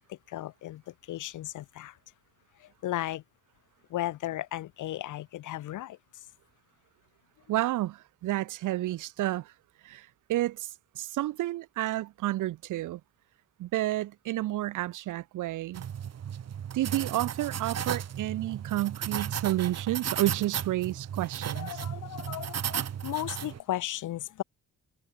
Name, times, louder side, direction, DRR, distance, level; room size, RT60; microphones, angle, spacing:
voice 1, 0.0-2.0 2.6-3.2 3.9-6.0 21.5-24.4, left 14 dB, 80° left, 4.3 m, -35 dB
voice 2, 7.5-9.5 9.8-13.0 13.6-15.8 16.7-21.8, right 15 dB, 90° right, 3.9 m, -30 dB
sound 1, 15.7-23.6, right 9 dB, 60° right, 5.2 m, -35 dB
cardioid pair, 90°, 30 cm